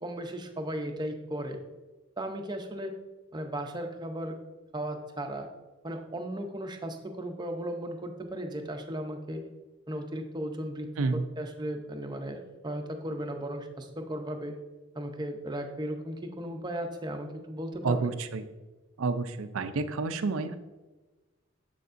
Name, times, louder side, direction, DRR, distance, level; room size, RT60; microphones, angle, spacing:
voice 1, 0.0-1.6 2.2-2.9 3.3-4.4 4.7-5.5 5.8-9.4 9.9-10.9 11.4-14.6 14.9-18.1, right 1 dB, 20° right, 4 dB, 0.6 m, -36 dB
voice 2, 17.8-18.4 19.0-20.5, right 4 dB, 75° right, 10 dB, 0.5 m, -29 dB
7.1 x 6.7 x 2.5 m, 1.2 s
head